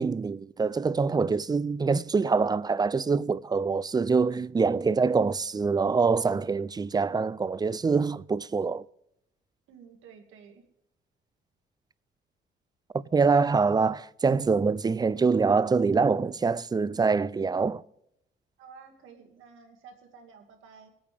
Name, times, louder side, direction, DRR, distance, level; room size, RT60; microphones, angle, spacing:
voice 1, 0.0-8.8 13.1-17.8, right 4 dB, 20° right, 0.4 m, -25 dB
voice 2, 9.7-10.6 18.6-20.9, right 6 dB, 85° right, 2.1 m, -51 dB
24.0 x 8.8 x 3.4 m
cardioid pair, 90°, 20 cm